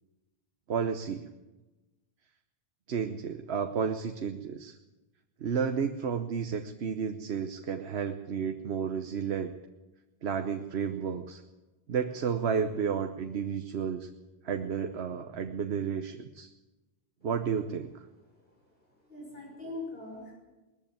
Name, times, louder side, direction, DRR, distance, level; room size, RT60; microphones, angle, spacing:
voice 1, 0.7-1.3 2.9-4.8 5.4-9.6 10.2-11.4 11.9-14.1 14.4-16.5 17.2-17.9, right 6 dB, 85° right, 7 dB, 1.2 m, -32 dB
voice 2, 18.7-20.3, left 2 dB, 65° left, -2 dB, 6.2 m, -42 dB
20.5 x 14.0 x 9.5 m, 1.1 s
omnidirectional pair, 1.1 m